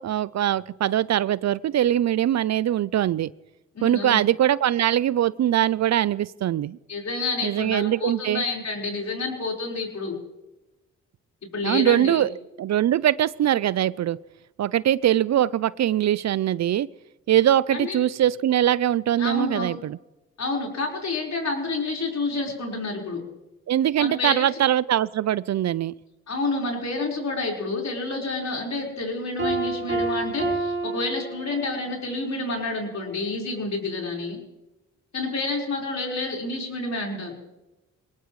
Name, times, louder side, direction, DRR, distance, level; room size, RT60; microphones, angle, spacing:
voice 1, 0.0-3.3 3.8-6.8 7.4-8.4 11.6-14.2 14.6-16.9 17.3-20.0 23.7-25.9, right 11 dB, 55° right, 20 dB, 0.4 m, -22 dB
voice 2, 3.7-4.2 6.9-10.2 11.5-12.2 17.7-18.0 19.2-19.7 20.4-23.2 24.0-24.5 26.3-34.4 35.1-37.3, left 3 dB, 55° left, -1 dB, 4.6 m, -29 dB
Piano, 29.4-31.9, right 3 dB, 35° right, 5.0 m, -28 dB
22.0 x 18.5 x 3.2 m, 1.0 s
cardioid pair, 55°, 32 cm